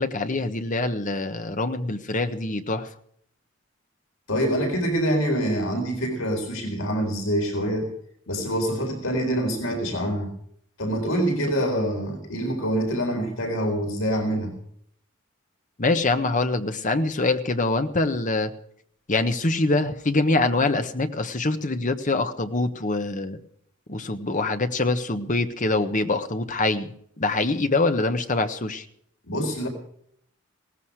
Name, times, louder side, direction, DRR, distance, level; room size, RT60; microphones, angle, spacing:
voice 1, 0.0-2.9 15.8-18.5 19.1-23.4 23.9-28.8, left 2 dB, 40° left, 8 dB, 1.3 m, -24 dB
voice 2, 4.3-7.9 8.3-10.3 10.8-14.5 29.3-29.7, equal, 85° left, 3 dB, 3.9 m, -25 dB
18.0 x 15.0 x 4.8 m, 0.66 s
head